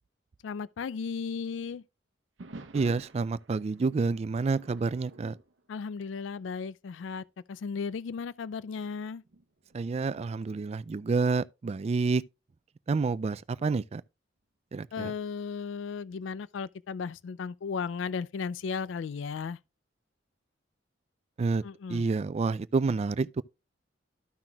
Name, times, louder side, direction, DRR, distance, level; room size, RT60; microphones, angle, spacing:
voice 1, 0.4-1.8 5.7-9.2 14.9-19.6 21.6-22.0, left 5 dB, 80° left, 0.4 m, -35 dB
sound 1, 2.4-6.5 6.9-7.2 7.8-7.9 8.7-11.4 13.2-13.7, right 2 dB, 85° right, 0.8 m, -51 dB
voice 2, 2.7-5.4 9.7-12.2 12.9-14.0 14.7-15.1 21.4-21.6 21.9-23.4, right 4 dB, 35° right, 0.3 m, -28 dB
13.5 x 5.9 x 2.3 m
head